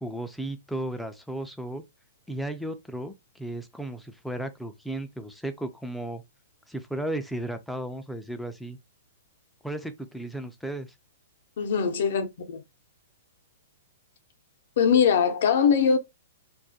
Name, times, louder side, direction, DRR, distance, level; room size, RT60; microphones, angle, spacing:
voice 1, 0.0-1.8 2.3-6.2 6.7-8.8 9.6-10.9, right 1 dB, ahead, 0.3 m, -34 dB
voice 2, 11.6-12.6 14.8-16.0, left 6 dB, 60° left, 0.5 m, -22 dB
2.3 x 2.1 x 2.6 m
hypercardioid pair, 150°, 0 cm